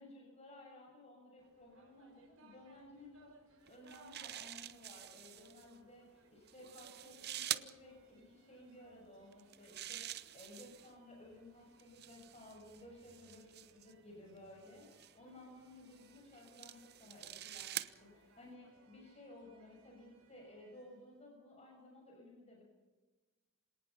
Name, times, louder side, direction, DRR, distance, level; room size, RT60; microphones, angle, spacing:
voice 1, 0.0-3.3 3.7-22.6, left 1 dB, 30° left, -1 dB, 6.4 m, -57 dB
sound 1, 1.4-21.2, right 2 dB, 65° right, 6.0 m, -67 dB
sound 2, 3.7-5.6 6.5-7.7 9.3-10.9 11.8-13.9 14.8-15.1 15.9-17.9, right 12 dB, 45° right, 0.8 m, -46 dB
26.5 x 19.0 x 5.9 m, 1.2 s
head